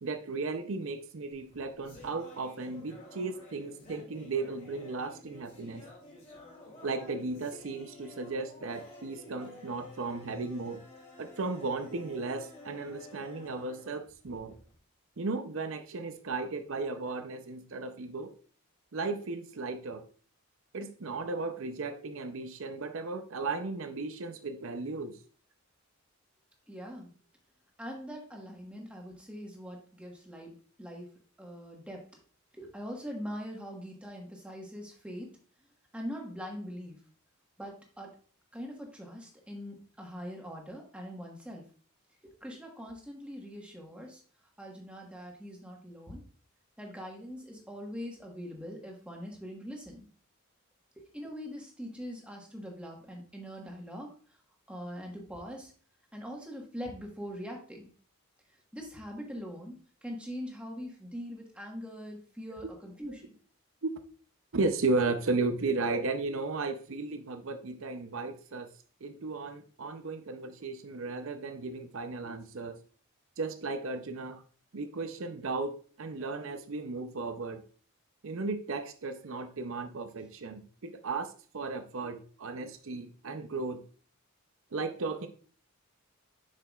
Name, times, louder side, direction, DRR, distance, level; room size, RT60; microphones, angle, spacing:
voice 1, 0.0-5.8 6.8-10.8 11.2-14.6 15.2-18.3 18.9-20.1 20.7-25.2 62.6-62.7 63.8-64.0 64.5-68.7 69.0-72.8 73.4-74.4 74.7-77.6 78.2-83.8 84.7-85.3, right 3 dB, 65° right, 8 dB, 0.6 m, -35 dB
sound 1, 1.3-14.8, left 2 dB, 35° left, 2.2 m, -52 dB
voice 2, 26.7-27.1 27.8-31.1 31.4-32.0 32.6-35.3 35.9-37.0 37.6-38.1 38.5-41.6 42.2-44.2 44.6-46.2 46.8-50.1 51.0-54.1 54.7-55.7 56.1-57.8 58.7-63.3, equal, 5° right, 0 dB, 1.3 m, -42 dB
7.2 x 5.8 x 2.3 m, 0.41 s
head